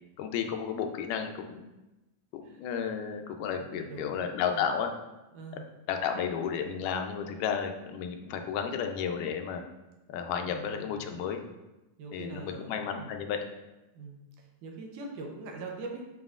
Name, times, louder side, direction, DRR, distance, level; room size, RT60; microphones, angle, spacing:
voice 1, 0.2-1.6 2.6-4.9 5.9-9.6 10.1-11.4 12.1-13.4, left 7 dB, 85° left, 5 dB, 2.2 m, -32 dB
voice 2, 3.6-4.2 4.5-4.6 5.3-5.7 10.5-11.2 12.0-12.7 13.0-13.1 14.0-16.2, right 3 dB, 80° right, 1 dB, 2.3 m, -43 dB
7.3 x 5.7 x 2.4 m, 1.0 s
omnidirectional pair, 3.7 m